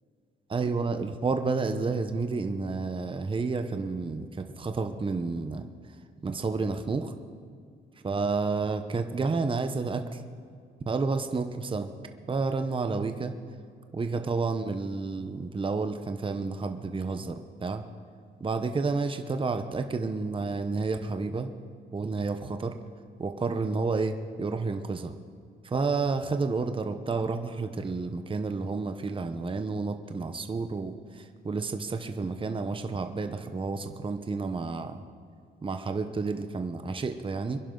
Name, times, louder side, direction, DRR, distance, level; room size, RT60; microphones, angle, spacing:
voice 1, 0.5-5.6 6.2-7.1 8.0-10.2 10.9-11.9 12.3-13.3 13.9-17.8 18.4-21.5 21.9-22.7 23.2-25.1 25.7-31.0 31.4-35.0 35.6-37.6, right 4 dB, 25° right, 7 dB, 1.0 m, -30 dB
24.5 x 11.0 x 3.9 m, 2.2 s
cardioid pair, 90°, 20 cm